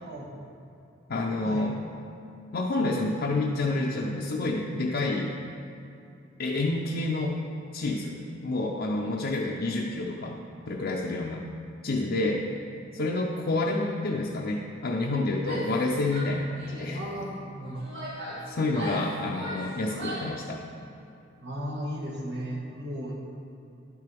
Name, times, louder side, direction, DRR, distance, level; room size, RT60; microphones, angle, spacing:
voice 1, 0.0-0.4 1.4-1.6 16.9-17.9 21.4-23.1, equal, 60° right, -3 dB, 1.5 m, -35 dB
voice 2, 1.1-1.8 2.5-5.4 6.4-7.4 7.7-10.4 10.7-11.4 11.8-12.5 12.9-17.0 18.5-20.6, left 2 dB, 55° left, -2 dB, 0.5 m, -28 dB
Female speech woman speaking / Yell, 15.4-15.8 16.1-16.9 17.6-20.4, equal, 80° right, 2.1 m, -38 dB
11.0 x 6.7 x 3.4 m, 2.7 s
head